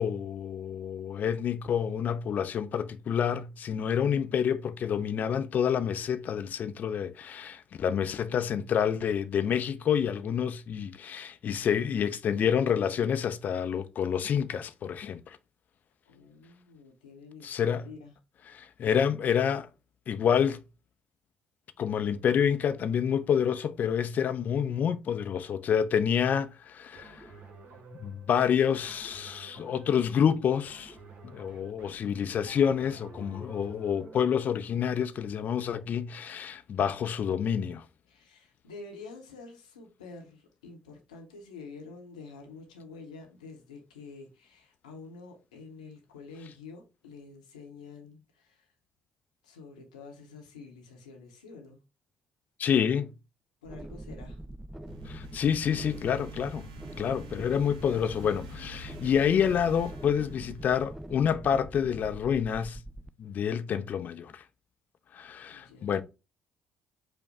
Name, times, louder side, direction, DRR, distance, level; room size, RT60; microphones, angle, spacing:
voice 1, 0.0-15.4 17.4-17.9 18.5-19.7 20.1-20.6 21.8-27.2 28.0-30.9 31.2-37.8 52.6-53.1 55.1-56.6 57.0-62.8 63.2-64.4 65.1-66.0, left 8 dB, 50° left, 0.5 m, -28 dB
voice 2, 16.1-18.1 38.1-48.7 49.4-51.8 53.6-54.4 65.5-66.0, left 4 dB, 80° left, 0.8 m, -48 dB
sound 1, 26.9-34.3, right 3 dB, 50° right, 1.1 m, -50 dB
sound 2, 53.6-63.1, right 1 dB, 10° right, 0.4 m, -43 dB
sound 3, 54.9-61.0, left 1 dB, 75° right, 0.7 m, -48 dB
5.2 x 2.2 x 4.7 m
figure-of-eight pair, 45°, 4 cm